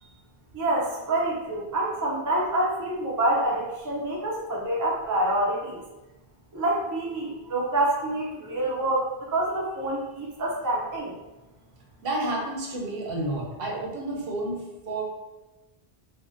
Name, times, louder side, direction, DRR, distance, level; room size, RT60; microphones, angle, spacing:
voice 1, 0.5-5.8 6.5-11.1, right 1 dB, 30° right, -3 dB, 0.4 m, -27 dB
voice 2, 12.0-15.0, right 2 dB, 70° right, -2 dB, 0.8 m, -30 dB
3.5 x 2.1 x 2.5 m, 1.1 s
omnidirectional pair, 1.1 m